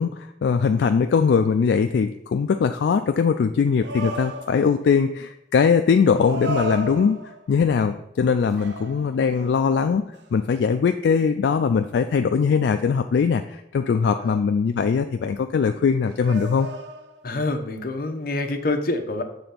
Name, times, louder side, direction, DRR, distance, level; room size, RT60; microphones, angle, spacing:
voice 1, 0.0-7.2 7.5-10.0 10.3-16.7, left 6 dB, 70° left, 7 dB, 0.3 m, -21 dB
sound 1, 3.8-4.9 6.1-7.6 8.6-9.6 10.1-10.3 16.2-17.4, right 2 dB, 75° right, 0.6 m, -34 dB
voice 2, 17.2-19.2, left 2 dB, 55° left, 5 dB, 0.8 m, -26 dB
6.9 x 3.4 x 5.6 m, 0.83 s
head